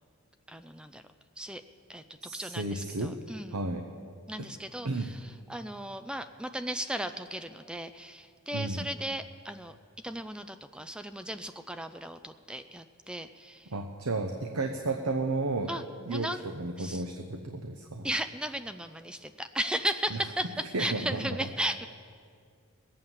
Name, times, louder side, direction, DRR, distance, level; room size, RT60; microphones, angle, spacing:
voice 1, 0.5-1.0 1.4-1.6 1.9-3.6 4.3-9.7 10.0-13.7 15.7-15.8 16.1-16.4 16.8-17.0 18.0-21.9, right 1 dB, 5° right, 10 dB, 0.4 m, -36 dB
voice 2, 2.2-3.1 3.5-3.8 4.4-4.5 4.8-5.1 8.5-8.9 13.7-15.7 16.1-18.1 20.1-20.2 20.7-21.4, right 2 dB, 75° right, 5 dB, 0.9 m, -32 dB
20.5 x 8.7 x 7.3 m, 2.2 s
head